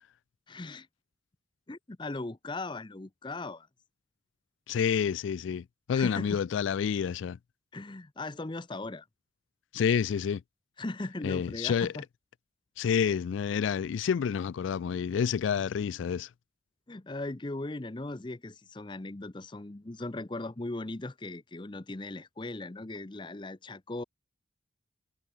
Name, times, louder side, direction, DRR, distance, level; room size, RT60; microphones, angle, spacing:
voice 1, 0.5-0.9 1.7-3.7 5.9-6.4 7.7-9.1 10.8-12.0 16.9-24.0, left 2 dB, 25° left, 0.6 m, -38 dB
voice 2, 4.7-7.4 9.7-10.4 11.2-11.9 12.8-16.3, left 7 dB, 75° left, 0.3 m, -29 dB
head